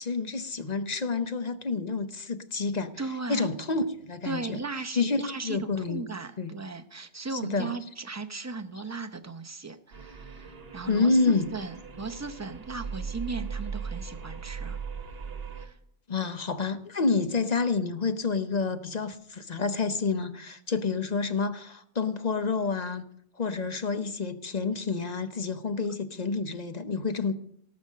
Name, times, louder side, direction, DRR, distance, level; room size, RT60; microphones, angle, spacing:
voice 1, 0.0-2.9 3.3-4.6 4.9-6.0 6.4-6.5 7.3-7.7 10.9-11.5 16.1-23.0 23.4-27.3, left 4 dB, 45° left, 9 dB, 0.9 m, -28 dB
voice 2, 3.0-3.5 4.2-14.8 15.5-15.8, right 3 dB, 20° right, 7 dB, 0.7 m, -37 dB
sound 1, 9.9-15.7, right 6 dB, 70° right, 1.4 m, -38 dB
17.5 x 6.3 x 6.5 m, 0.71 s
omnidirectional pair, 1.1 m